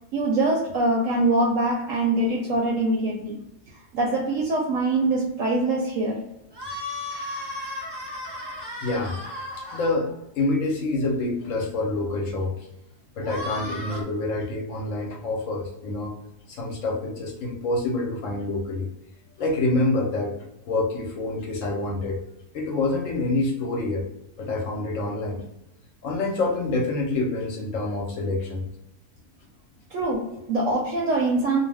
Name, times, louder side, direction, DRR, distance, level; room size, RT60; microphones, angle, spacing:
voice 1, 0.1-3.4 3.9-6.2 29.9-31.6, right 2 dB, 70° right, -1 dB, 0.8 m, -23 dB
sound 1, 6.5-9.9 13.2-14.0, left 2 dB, 30° right, 0.4 m, -34 dB
voice 2, 8.8-9.2 9.7-12.7 13.2-16.2 16.5-18.9 19.4-20.3 20.7-22.2 22.5-24.1 24.4-25.4 26.0-28.7, left 2 dB, 65° left, 0 dB, 0.9 m, -27 dB
2.5 x 2.0 x 3.3 m, 0.84 s
omnidirectional pair, 1.6 m